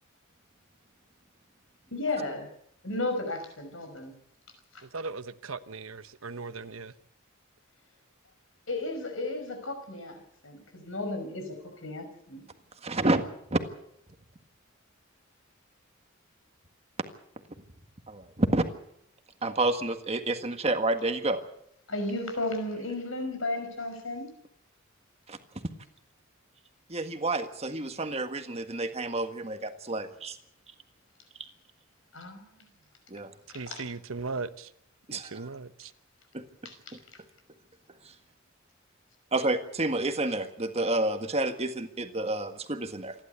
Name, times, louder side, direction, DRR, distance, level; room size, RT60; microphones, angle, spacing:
voice 1, 1.9-2.5 2.8-4.1 4.7-4.8 8.7-12.5 21.9-24.3 32.1-32.6 33.5-33.8 36.6-37.0, left 2 dB, 75° left, 5.6 m, -34 dB
voice 2, 4.8-6.9 33.5-34.7 35.1-35.9, right 4 dB, 85° right, 1.1 m, -38 dB
voice 3, 12.8-13.2 13.5-13.6 18.1-18.6 19.4-21.4 25.3-25.4 26.9-30.4 33.1-33.3 35.1-35.3 36.3-36.4 39.3-43.1, right 2 dB, 30° right, 1.7 m, -29 dB
27.5 x 11.5 x 8.1 m
head